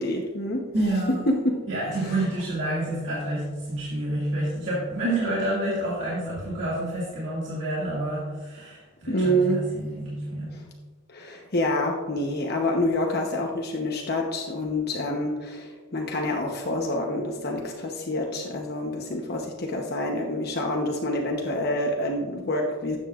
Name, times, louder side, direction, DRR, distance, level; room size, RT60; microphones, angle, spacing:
voice 1, 0.0-0.7 1.3-1.6 2.0-2.2 9.1-9.6 10.5-10.6 11.1-23.0, left 1 dB, 50° left, 0 dB, 0.9 m, -27 dB
voice 2, 0.7-1.3 1.7-10.7, right 1 dB, 60° right, -8 dB, 2.1 m, -28 dB
12.5 x 8.2 x 2.4 m, 1.3 s
head